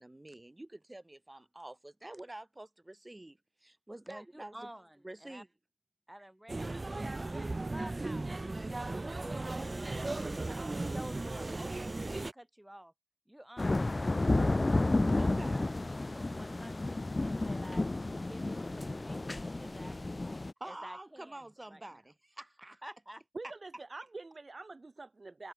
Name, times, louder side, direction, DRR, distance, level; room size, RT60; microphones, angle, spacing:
voice 1, 0.0-4.7 5.0-5.5 15.1-15.7 18.1-18.2 20.6-22.8, right 1 dB, 35° right, 2.9 m, -48 dB
voice 2, 4.1-5.4 6.1-8.4 8.9-12.9 13.3-14.8 15.2-17.9 18.3-20.0 20.6-21.4 21.7-21.8 22.8-23.2, right 1 dB, 15° right, 1.3 m, -51 dB
sound 1, 6.5-12.3, right 2 dB, 55° right, 0.8 m, -36 dB
sound 2, 13.6-20.5, left 2 dB, 55° left, 0.3 m, -31 dB
voice 3, 23.3-25.5, right 3 dB, 70° right, 3.9 m, -45 dB
wide cardioid pair, 45°, 0 cm